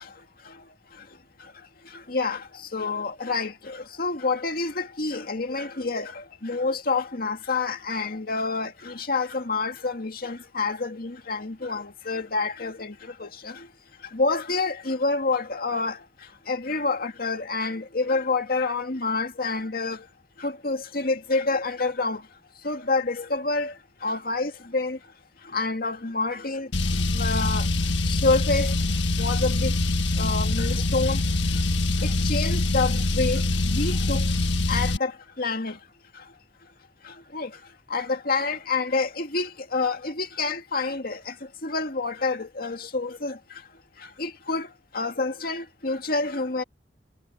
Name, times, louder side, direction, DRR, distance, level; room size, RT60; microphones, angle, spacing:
voice 1, 2.1-2.4 2.7-12.9 13.2-13.5 14.1-16.0 16.5-20.0 20.4-22.2 22.6-23.7 24.0-25.0 25.5-26.7 27.1-27.7 28.1-28.7 29.2-29.7 30.2-31.2 32.2-34.2 34.7-35.1 35.4-35.7 37.3-37.5 37.9-41.2 41.6-43.4 44.2-44.7 44.9-46.6, left 3 dB, 55° left, 2.2 m, -27 dB
Car, 26.7-35.0, left 2 dB, 85° left, 1.5 m, -24 dB
head